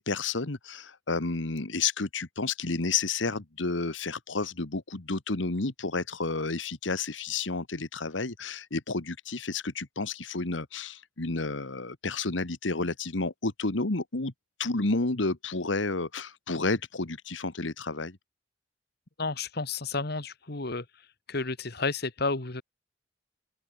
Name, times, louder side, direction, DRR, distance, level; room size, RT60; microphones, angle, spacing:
voice 1, 0.0-14.3 14.6-18.2, left 3 dB, 85° left, 1.6 m, -31 dB
voice 2, 19.2-20.9 21.3-22.6, left 3 dB, 55° left, 1.8 m, -31 dB
open air
head